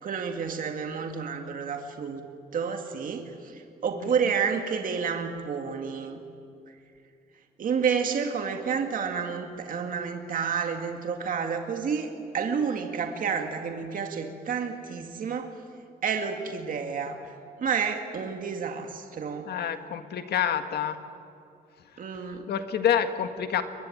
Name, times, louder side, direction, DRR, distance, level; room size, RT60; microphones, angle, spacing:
voice 1, 0.0-2.2 2.5-6.2 7.6-15.5 16.0-17.2 17.6-19.5 22.0-22.5, right 6 dB, 55° right, 4 dB, 2.1 m, -30 dB
voice 2, 19.5-21.0 22.5-23.6, left 9 dB, 85° left, 8 dB, 1.8 m, -27 dB
23.0 x 22.0 x 8.8 m, 2.6 s
wide cardioid pair, 155°, 16 cm